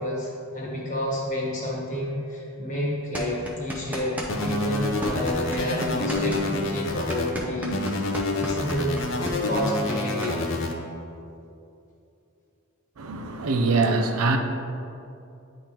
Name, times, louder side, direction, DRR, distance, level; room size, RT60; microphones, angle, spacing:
voice 1, 0.0-7.8 8.4-9.0 9.3-10.5, left 1 dB, 35° left, -5 dB, 1.3 m, -29 dB
sound 1, 3.1-4.5 4.7-10.3, right 1 dB, 5° right, 0.5 m, -34 dB
sound 2, 4.3-7.3 7.7-10.7, left 2 dB, 60° left, 0.6 m, -28 dB
voice 2, 13.0-14.4, right 3 dB, 85° right, 5 dB, 0.5 m, -23 dB
9.8 x 3.8 x 3.0 m, 2.6 s
head